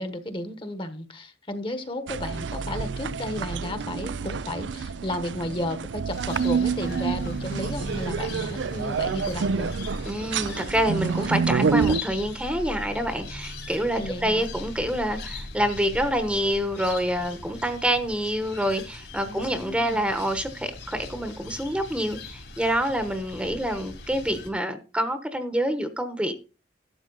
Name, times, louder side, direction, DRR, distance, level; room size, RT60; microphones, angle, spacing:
voice 1, 0.0-9.7 13.9-14.5 19.3-20.0, left 1 dB, 30° left, 1.2 m, -33 dB
sound 1, 2.1-12.0, right 5 dB, 85° right, 0.5 m, -28 dB
sound 2, 6.1-24.5, left 2 dB, 70° left, 3.6 m, -39 dB
voice 2, 10.0-26.3, equal, 5° right, 1.0 m, -27 dB
12.5 x 7.9 x 4.0 m
head